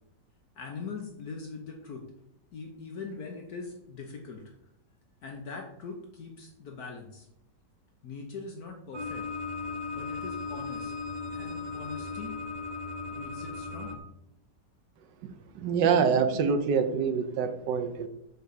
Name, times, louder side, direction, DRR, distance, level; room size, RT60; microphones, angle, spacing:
voice 1, 0.5-2.0 2.5-4.4 5.2-7.3 8.0-9.3 9.9-10.9 11.3-12.3 13.1-14.0, left 4 dB, 60° left, 2 dB, 1.4 m, -41 dB
sound 1, 8.9-14.0, left 4 dB, 60° right, 0.4 m, -36 dB
voice 2, 15.5-18.1, right 6 dB, 80° right, 8 dB, 1.5 m, -25 dB
6.9 x 4.0 x 6.5 m, 0.78 s
omnidirectional pair, 1.9 m